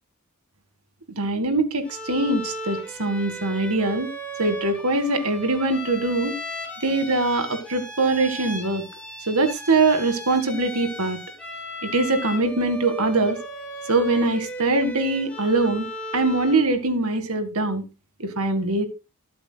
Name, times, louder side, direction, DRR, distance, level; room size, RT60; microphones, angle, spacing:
voice 1, 1.2-4.1 4.4-6.4 6.8-8.8 9.3-11.2 11.8-13.4 13.9-15.9 16.1-17.9 18.2-18.9, right 2 dB, 85° right, 8 dB, 1.9 m, -22 dB
Bowed string instrument, 1.8-16.7, equal, 5° left, 3.3 m, -36 dB
20.5 x 8.3 x 2.3 m, 0.28 s
head